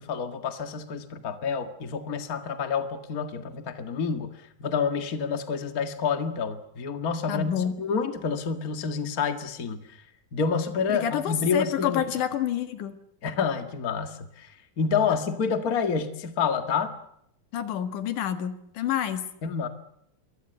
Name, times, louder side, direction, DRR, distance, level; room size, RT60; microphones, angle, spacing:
voice 1, 0.0-4.3 4.6-9.8 10.3-12.0 13.2-16.9 19.4-19.7, left 6 dB, 35° left, 7 dB, 1.9 m, -28 dB
voice 2, 7.3-7.7 10.9-13.0 17.5-19.2, left 10 dB, 85° left, 9 dB, 3.1 m, -28 dB
28.0 x 23.5 x 8.0 m, 0.76 s
omnidirectional pair, 3.5 m